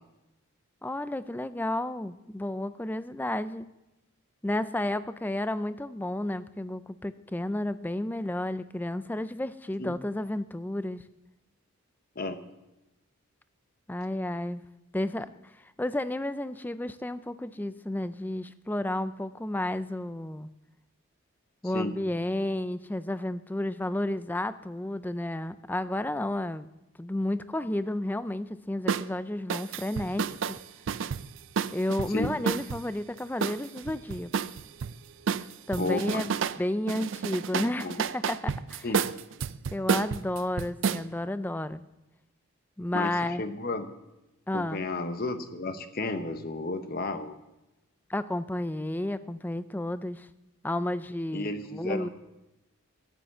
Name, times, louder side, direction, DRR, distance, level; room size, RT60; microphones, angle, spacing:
voice 1, 0.8-3.7 4.4-11.0 13.9-14.6 14.9-15.3 15.8-20.5 21.6-26.7 27.0-30.6 31.7-34.3 35.7-38.9 39.7-41.8 42.8-43.4 44.5-44.8 48.1-50.3 50.6-52.1, left 1 dB, 10° left, 13 dB, 0.4 m, -32 dB
sound 1, 28.9-29.1 29.5-32.8 33.4-34.9 35.3-36.6 36.9-41.0, right 6 dB, 65° right, 0.4 m, -30 dB
voice 2, 35.8-36.2 37.5-38.0 38.8-39.0 42.9-43.9 44.5-47.4 51.3-52.1, left 2 dB, 45° left, 9 dB, 0.9 m, -33 dB
12.0 x 8.8 x 6.7 m, 0.96 s
head